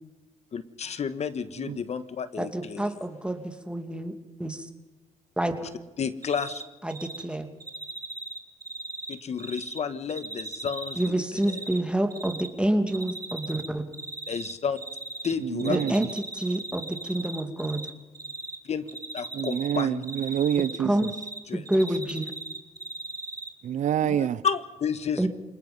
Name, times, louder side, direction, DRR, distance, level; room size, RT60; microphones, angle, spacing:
voice 1, 0.5-2.9 6.0-6.6 9.1-11.6 14.3-14.8 15.2-16.0 18.6-18.9 19.1-20.0 21.5-21.6 24.0-25.3, left 6 dB, 55° left, 1.3 m, -31 dB
voice 2, 2.4-4.1 4.4-4.7 5.4-5.5 6.8-7.5 11.0-13.8 15.7-17.8 20.8-21.1 21.5-22.3 25.2-25.3, right 1 dB, 10° right, 2.5 m, -28 dB
Cricket, 6.2-6.6 6.9-7.2 7.6-9.8 10.1-11.8 12.1-12.5 12.9-13.7 13.9-15.3 15.6-17.9 18.2-18.6 18.9-21.4 21.7-23.5, right 2 dB, 30° right, 2.3 m, -37 dB
voice 3, 15.4-16.1 19.3-21.1 23.6-24.4, right 10 dB, 70° right, 0.6 m, -27 dB
27.5 x 19.5 x 5.4 m
cardioid pair, 80°, 13 cm